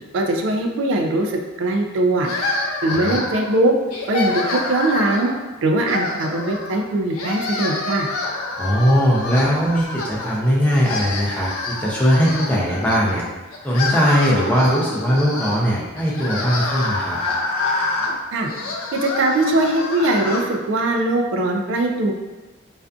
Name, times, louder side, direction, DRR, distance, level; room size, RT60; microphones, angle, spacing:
voice 1, 0.1-2.3 2.8-3.7 4.1-5.3 5.6-8.1 18.3-18.5 18.9-22.1, right 2 dB, 60° right, 3 dB, 0.3 m, -21 dB
sound 1, 2.2-3.5 3.9-5.4 5.8-6.8 7.1-10.4 10.7-13.0 13.5-20.5, left 3 dB, 85° left, 0.4 m, -27 dB
voice 2, 8.6-13.2 13.6-17.2, equal, 5° left, -6 dB, 0.4 m, -19 dB
2.5 x 2.4 x 2.3 m, 1.2 s
head